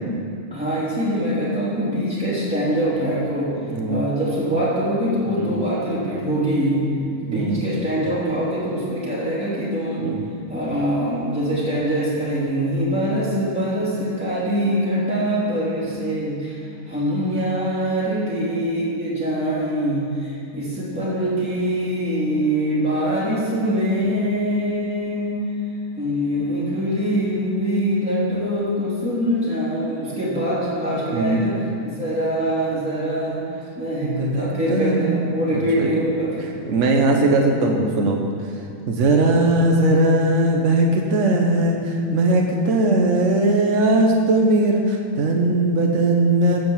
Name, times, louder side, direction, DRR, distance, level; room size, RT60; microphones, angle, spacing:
voice 1, 0.5-3.5 3.9-6.8 7.2-10.1 10.5-16.6 16.9-25.4 25.9-33.4 33.7-36.5 37.1-37.5, equal, 5° right, -10 dB, 3.1 m, -23 dB
voice 2, 3.7-4.0 5.3-5.6 7.3-7.6 10.0-10.2 31.1-31.4 34.0-35.2 35.5-35.9 36.7-38.2 38.9-46.6, right 2 dB, 60° right, 1 dB, 1.4 m, -19 dB
15.5 x 5.2 x 7.3 m, 2.4 s
omnidirectional pair, 1.5 m